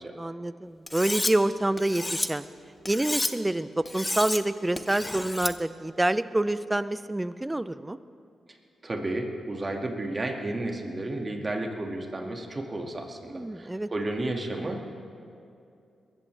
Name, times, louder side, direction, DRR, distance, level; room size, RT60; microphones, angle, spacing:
voice 1, 0.1-2.5 2.9-8.0 13.3-13.9, right 1 dB, 15° right, 14 dB, 0.5 m, -27 dB
Cutlery silverware, 0.9-1.3 1.8-2.3 2.9-3.3 3.9-4.4 4.8-5.5, left 1 dB, 15° left, 0.8 m, -30 dB
voice 2, 8.8-14.9, right 2 dB, 35° right, 2 dB, 2.1 m, -32 dB
22.0 x 13.5 x 3.4 m, 2.6 s
cardioid pair, 65°, 0 cm